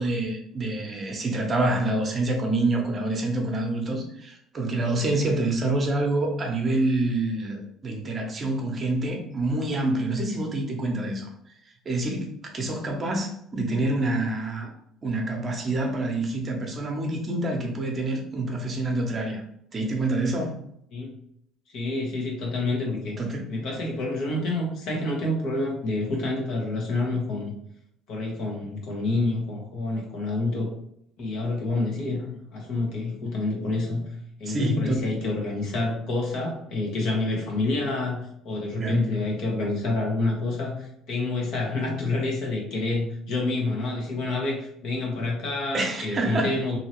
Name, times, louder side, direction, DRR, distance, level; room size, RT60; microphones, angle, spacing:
voice 1, 0.0-11.3 11.9-14.7 15.0-19.4 19.7-20.6 23.2-23.5 34.5-35.1 38.8-39.1 45.7-46.5, right 2 dB, 35° right, 2 dB, 0.8 m, -27 dB
voice 2, 21.7-23.2 23.5-27.5 28.1-30.7 31.2-34.1 34.4-46.8, left 2 dB, 65° left, 0 dB, 1.1 m, -28 dB
2.7 x 2.7 x 3.0 m, 0.72 s
supercardioid pair, 95°, 0 cm